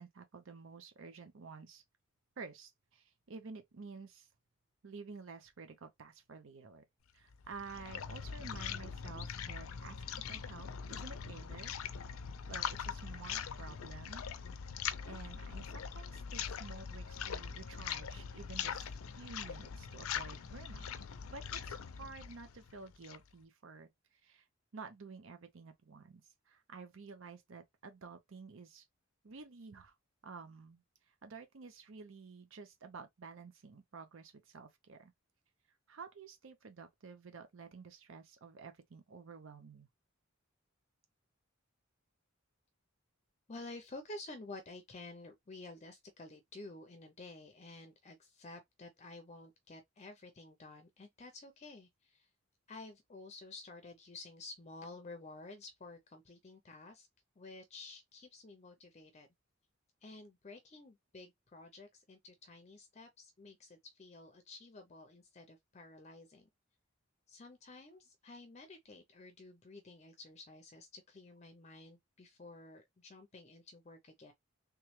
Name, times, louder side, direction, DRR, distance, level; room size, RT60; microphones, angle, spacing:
voice 1, 0.0-1.8 2.4-4.3 4.8-6.8 7.1-11.7 12.5-14.2 15.0-20.9 21.3-24.5 24.7-28.8 29.2-30.0 30.2-35.1 35.9-39.9, right 4 dB, 65° right, 0.6 m, -51 dB
sound 1, 7.3-23.3, left 7 dB, 85° left, 0.5 m, -42 dB
voice 2, 43.5-52.3 52.7-57.1 57.4-59.3 60.0-66.5 67.3-74.3, left 2 dB, 35° left, 0.5 m, -51 dB
3.4 x 3.0 x 3.1 m
head